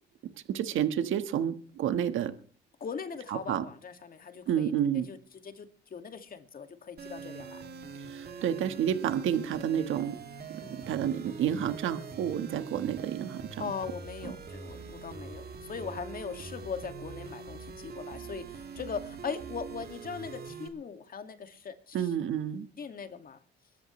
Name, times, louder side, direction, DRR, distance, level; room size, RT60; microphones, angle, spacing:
voice 1, 0.2-2.3 3.3-3.6 4.5-5.1 8.1-10.2 10.5-13.7 21.9-22.7, right 9 dB, 80° right, 1.6 m, -30 dB
voice 2, 2.8-4.7 5.1-5.2 5.4-7.6 10.6-10.9 13.6-22.1 22.8-23.4, left 6 dB, 45° left, 2.2 m, -40 dB
sound 1, 7.0-20.7, right 5 dB, 55° right, 2.6 m, -43 dB
23.0 x 13.0 x 3.3 m
cardioid pair, 90°, 20 cm